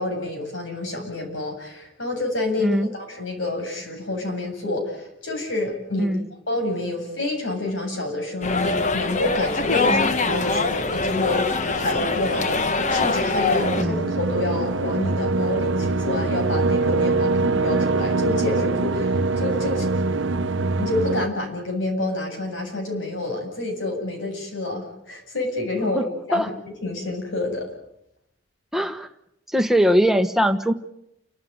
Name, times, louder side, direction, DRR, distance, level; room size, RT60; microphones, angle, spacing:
voice 1, 0.0-6.2 6.5-19.9 20.8-26.5 26.8-27.7, left 2 dB, 85° left, 3 dB, 8.0 m, -28 dB
sound 1, 8.4-13.8, left 3 dB, 40° left, 1.3 m, -23 dB
sound 2, 13.6-21.3, right 3 dB, 75° right, 0.9 m, -23 dB
voice 2, 28.7-29.1 29.5-30.7, equal, ahead, 7 dB, 1.3 m, -21 dB
29.5 x 13.5 x 9.6 m, 0.80 s
head